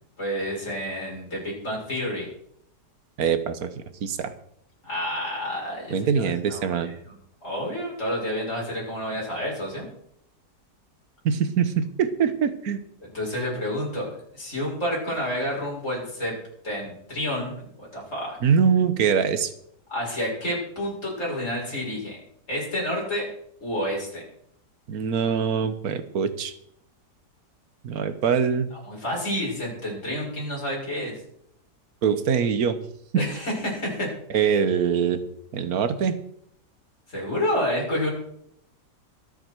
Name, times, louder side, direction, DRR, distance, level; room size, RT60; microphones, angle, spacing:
voice 1, 0.2-2.3 4.8-9.9 13.0-16.3 16.6-18.4 19.9-22.2 22.5-23.3 23.6-24.2 28.7-31.1 33.2-34.1 37.1-38.1, equal, 45° left, -4 dB, 6.8 m, -29 dB
voice 2, 3.2-3.7 4.0-4.3 5.9-6.9 11.2-12.8 18.4-19.5 24.9-26.5 27.8-28.7 32.0-32.8 33.1-33.2 34.3-35.2 35.5-36.2, right 7 dB, 60° right, 11 dB, 1.4 m, -23 dB
23.5 x 7.9 x 4.6 m, 0.71 s
omnidirectional pair, 1.9 m